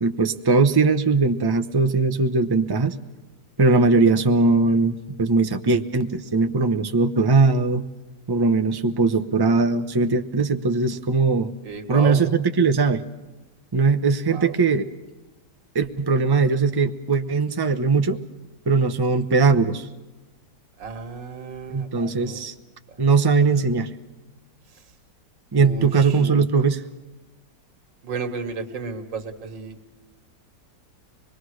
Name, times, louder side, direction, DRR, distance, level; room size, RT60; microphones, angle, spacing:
voice 1, 0.0-3.0 3.6-7.8 8.3-11.5 11.9-13.0 13.7-14.8 15.7-18.2 18.7-19.9 21.7-22.5 23.0-23.9 25.5-26.8, right 4 dB, 30° right, 8 dB, 0.4 m, -20 dB
voice 2, 11.6-12.2 14.3-14.6 20.8-22.5 25.5-26.2 28.0-29.8, right 4 dB, 85° right, 7 dB, 2.4 m, -33 dB
25.0 x 21.5 x 6.5 m, 1.1 s
omnidirectional pair, 1.9 m